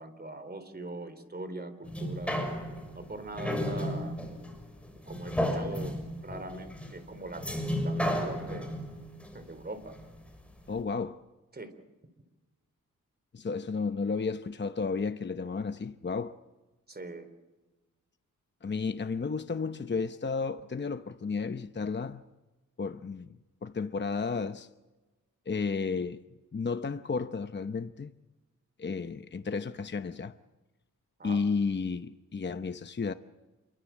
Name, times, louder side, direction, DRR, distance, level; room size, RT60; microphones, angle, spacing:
voice 1, 0.0-2.4 2.9-4.2 4.9-6.0 6.2-7.5 7.8-8.7 9.3-9.9 11.5-11.7 16.9-17.3 31.2-31.4, right 2 dB, 30° right, 3.8 m, -41 dB
Weird Radiator, 1.8-10.4 10.8-10.9, equal, 5° left, 6.5 m, -34 dB
voice 2, 10.7-11.2 13.3-16.4 18.6-22.3 22.8-23.4 23.6-24.7 25.5-26.2 26.5-28.1 28.8-30.3 31.2-33.1, left 4 dB, 35° left, 0.9 m, -32 dB
28.5 x 23.0 x 7.4 m
wide cardioid pair, 100°, 32 cm